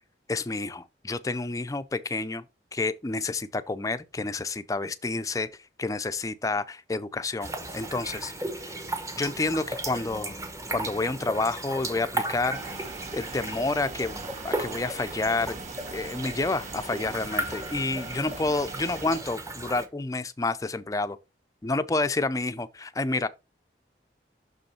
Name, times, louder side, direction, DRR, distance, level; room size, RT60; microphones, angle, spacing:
voice 1, 0.3-2.4 2.7-5.5 5.8-8.3 8.7-8.8 9.2-10.3 10.7-15.5 15.9-21.2 21.6-23.3, left 3 dB, 20° left, 0.4 m, -29 dB
sound 1, 7.4-19.9, right 2 dB, 20° right, 0.9 m, -35 dB
sound 2, 12.5-19.2, right 4 dB, 40° right, 0.4 m, -42 dB
6.3 x 5.3 x 4.2 m
head